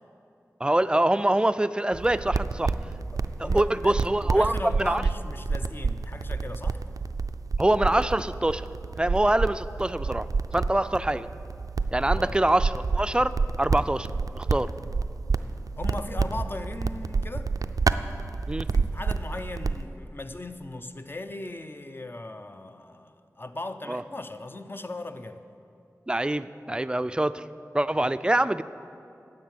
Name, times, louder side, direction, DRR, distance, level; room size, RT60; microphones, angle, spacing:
voice 1, 0.6-2.7 3.4-5.0 7.6-8.7 9.0-10.3 10.5-11.3 11.9-14.1 14.3-14.7 18.5-18.7 23.9-24.0 26.1-27.4 27.7-28.6, right 1 dB, 15° right, 13 dB, 0.4 m, -24 dB
sound 1, 1.9-19.8, right 4 dB, 85° right, 0.4 m, -29 dB
voice 2, 3.1-6.8 12.2-12.4 15.8-17.5 18.7-25.4, left 2 dB, 40° left, 9 dB, 0.7 m, -38 dB
10.5 x 7.3 x 9.2 m, 2.7 s
wide cardioid pair, 50°, 6 cm